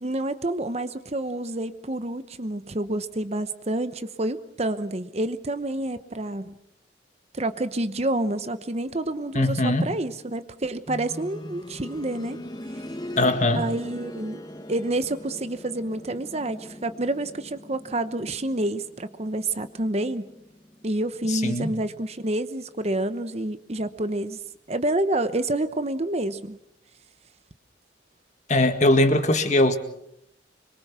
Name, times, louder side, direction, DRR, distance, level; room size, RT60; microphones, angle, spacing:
voice 1, 0.0-6.5 7.3-12.4 13.5-14.4 14.7-20.3 20.8-24.4 24.7-26.6, right 1 dB, 35° right, 11 dB, 0.9 m, -28 dB
voice 2, 9.3-9.9 13.2-13.6 21.3-21.8 28.5-29.8, left 1 dB, 40° left, 8 dB, 1.9 m, -21 dB
sound 1, 10.9-21.6 23.0-23.1, equal, 20° left, 1.5 m, -41 dB
25.5 x 23.0 x 6.1 m, 0.77 s
head